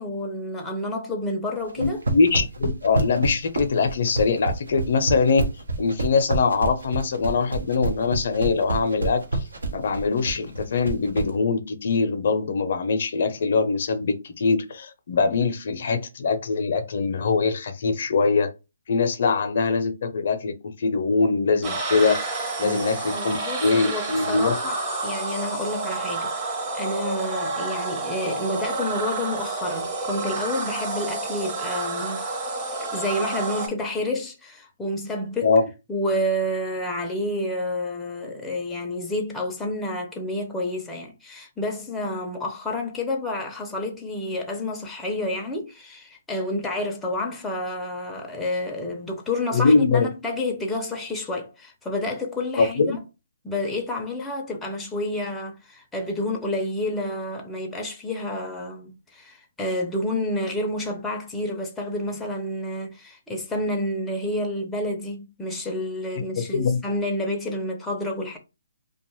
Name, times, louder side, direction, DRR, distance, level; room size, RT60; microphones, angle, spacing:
voice 1, 0.0-2.0 22.6-32.2 32.9-35.5 35.9-53.0 53.4-68.4, left 1 dB, 5° left, 0.5 m, -29 dB
sound 1, 1.7-11.3, right 2 dB, 80° right, 0.8 m, -27 dB
voice 2, 1.8-5.4 5.8-9.4 9.7-18.5 18.9-24.5 35.4-35.6 49.5-50.1 52.6-53.0 66.4-66.8, left 4 dB, 55° left, 0.5 m, -23 dB
sound 2, 21.6-33.7, right 3 dB, 20° right, 0.8 m, -29 dB
2.5 x 2.2 x 3.0 m
hypercardioid pair, 150°, 0 cm